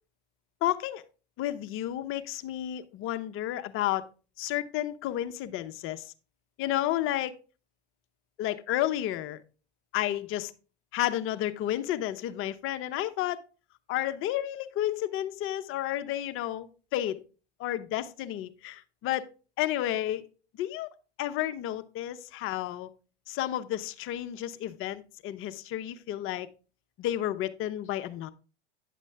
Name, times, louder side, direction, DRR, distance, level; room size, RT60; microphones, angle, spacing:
voice 1, 0.6-1.0 1.4-4.1 4.4-6.1 6.6-7.4 8.4-9.4 9.9-10.5 10.9-13.4 13.9-17.2 17.6-19.3 19.6-20.3 20.6-20.9 21.2-22.9 23.3-26.5 27.0-28.3, left 13 dB, 40° left, 0.8 m, -31 dB
10.0 x 7.3 x 3.4 m
hypercardioid pair, 90°, 33 cm